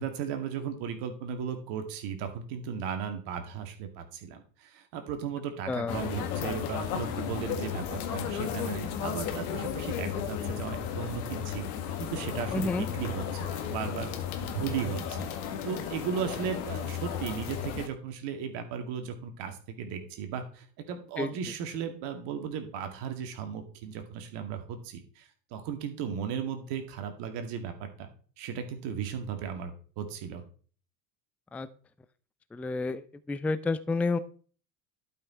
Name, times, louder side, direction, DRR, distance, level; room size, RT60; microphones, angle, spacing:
voice 1, 0.0-11.7 12.0-14.1 14.4-28.1 28.4-30.4, right 7 dB, 55° right, 6 dB, 2.1 m, -36 dB
voice 2, 5.7-6.0 12.5-12.9 21.2-21.3 31.5-31.7 32.5-34.2, left 3 dB, 5° left, 14 dB, 0.4 m, -30 dB
sound 1, 5.9-17.9, left 9 dB, 65° left, 1.8 m, -34 dB
11.5 x 5.8 x 4.4 m, 0.42 s
hypercardioid pair, 75°, 48 cm